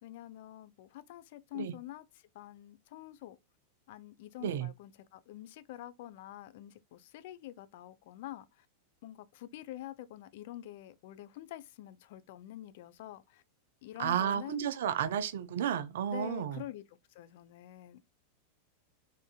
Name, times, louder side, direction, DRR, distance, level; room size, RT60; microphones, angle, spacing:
voice 1, 0.0-3.4 3.9-8.7 9.0-13.4 13.8-14.7 16.1-16.8 17.1-18.1, left 14 dB, 50° left, 0.3 m, -46 dB
voice 2, 14.0-16.6, right 9 dB, 60° right, 0.4 m, -32 dB
3.5 x 2.5 x 2.2 m
figure-of-eight pair, 90°, 0 cm